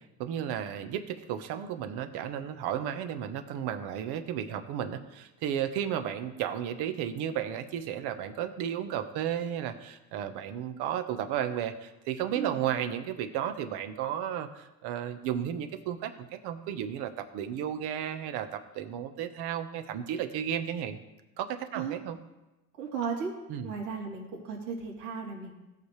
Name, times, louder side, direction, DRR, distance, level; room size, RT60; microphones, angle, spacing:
voice 1, 0.2-21.0 21.4-22.2 23.5-23.7, right 9 dB, 60° right, 8 dB, 1.2 m, -33 dB
voice 2, 22.8-23.3 23.6-25.5, right 5 dB, 85° right, -2 dB, 3.3 m, -35 dB
17.0 x 6.9 x 3.2 m, 1.0 s
supercardioid pair, 100°, 45 cm